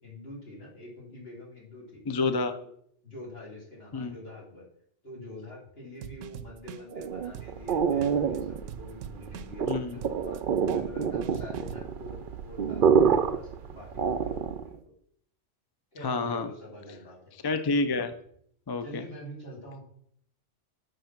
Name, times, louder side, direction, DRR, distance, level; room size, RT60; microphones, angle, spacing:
voice 1, 0.0-2.0 2.5-2.7 3.0-4.6 5.0-14.9 15.9-17.2 18.8-19.8, left 1 dB, 55° left, -5 dB, 3.6 m, -45 dB
voice 2, 2.1-2.5 3.9-4.1 9.7-10.0 16.0-16.5 17.4-18.1 18.7-19.0, left 3 dB, 35° left, 9 dB, 0.4 m, -28 dB
sound 1, 6.0-11.8, right 9 dB, 90° right, 0.9 m, -43 dB
sound 2, 6.9-14.7, right 7 dB, 55° right, 0.7 m, -27 dB
7.9 x 6.2 x 6.0 m, 0.68 s
omnidirectional pair, 1.3 m